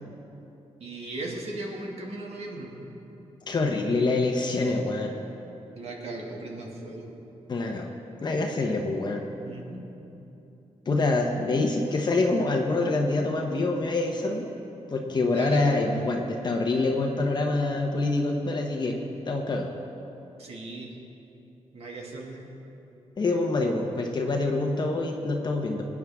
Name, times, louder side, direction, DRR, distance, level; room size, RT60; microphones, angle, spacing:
voice 1, 0.8-2.8 5.8-7.1 9.4-9.9 15.2-15.7 20.4-20.9 21.7-22.4, right 2 dB, 65° right, -1 dB, 2.1 m, -37 dB
voice 2, 3.5-5.1 7.5-7.9 8.2-9.2 10.9-14.5 14.9-19.0 19.2-19.7 23.2-25.9, left 2 dB, 40° left, 1 dB, 1.0 m, -26 dB
23.0 x 9.5 x 3.6 m, 2.9 s
wide cardioid pair, 145°, 11 cm